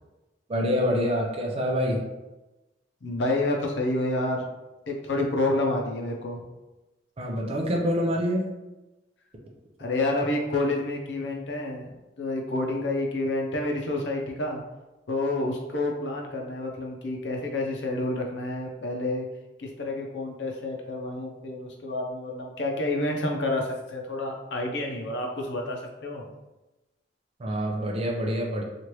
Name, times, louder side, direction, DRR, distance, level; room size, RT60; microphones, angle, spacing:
voice 1, 0.5-2.0 7.2-8.5 27.4-28.6, equal, 35° right, -1 dB, 0.4 m, -26 dB
voice 2, 3.0-4.4 4.9-6.4 9.8-14.6 15.1-19.3 19.6-26.3, left 2 dB, 85° left, 1 dB, 0.6 m, -29 dB
3.1 x 2.5 x 2.9 m, 1.1 s
head